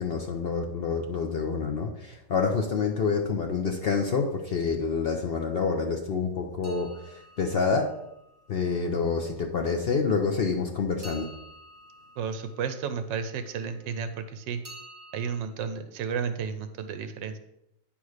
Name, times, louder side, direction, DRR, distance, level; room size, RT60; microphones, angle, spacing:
voice 1, 0.0-7.9 8.5-11.3, left 5 dB, 75° left, 3 dB, 0.5 m, -27 dB
sound 1, 6.6-8.7 11.0-13.4 14.6-15.4, right 1 dB, 25° right, 1.8 m, -50 dB
voice 2, 12.2-14.6 15.1-17.4, right 6 dB, 90° right, 9 dB, 1.4 m, -32 dB
9.4 x 3.5 x 6.4 m, 0.83 s
omnidirectional pair, 1.9 m